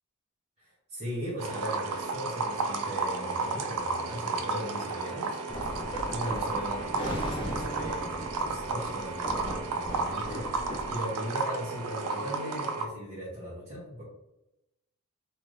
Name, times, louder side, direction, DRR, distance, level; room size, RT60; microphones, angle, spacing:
voice 1, 0.6-5.4 5.7-5.8 6.1-14.0, equal, 25° right, -8 dB, 0.7 m, -38 dB
sound 1, 1.4-12.8, right 4 dB, 90° right, 0.4 m, -33 dB
sound 2, 5.5-11.0, equal, 25° left, 0.4 m, -38 dB
2.6 x 2.4 x 3.1 m, 0.90 s
head